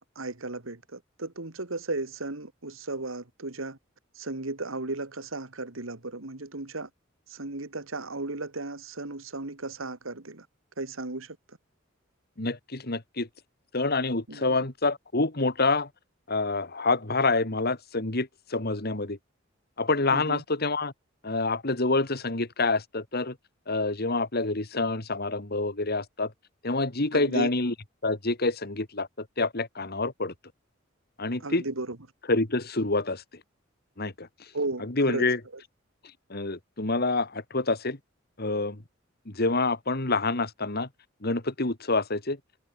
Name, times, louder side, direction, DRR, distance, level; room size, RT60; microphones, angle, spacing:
voice 1, 0.2-3.8 4.2-6.9 7.3-10.5 10.8-11.4 14.3-14.6 20.1-20.4 27.1-27.5 31.4-32.0 34.5-35.2 35.5-35.6, right 2 dB, 85° right, 2.3 m, -35 dB
voice 2, 12.4-13.3 13.7-15.9 16.3-19.2 19.8-20.9 21.2-23.3 23.7-26.3 26.6-27.7 28.0-29.1 29.4-30.3 31.2-31.6 32.3-33.2 34.0-34.3 34.8-35.4 36.3-38.0 38.4-38.8 39.3-40.9 41.2-42.4, left 3 dB, 50° left, 2.4 m, -27 dB
head